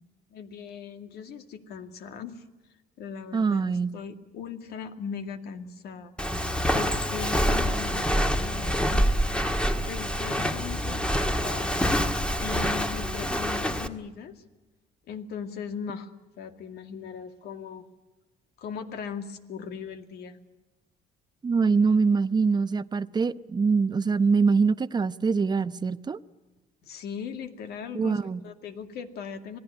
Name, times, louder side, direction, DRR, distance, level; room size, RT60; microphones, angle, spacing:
voice 1, 0.3-2.4 3.0-6.1 6.7-9.1 9.9-11.9 12.4-14.4 15.1-17.9 18.6-20.4 26.8-29.6, left 6 dB, 70° left, 7 dB, 2.3 m, -39 dB
voice 2, 3.3-3.9 21.4-26.2 27.9-28.4, right 5 dB, 25° right, 14 dB, 0.7 m, -24 dB
Walk footsteps, 6.2-13.9, equal, 5° left, 1.6 m, -26 dB
26.5 x 18.5 x 9.8 m, 1.1 s
cardioid pair, 110°, 17 cm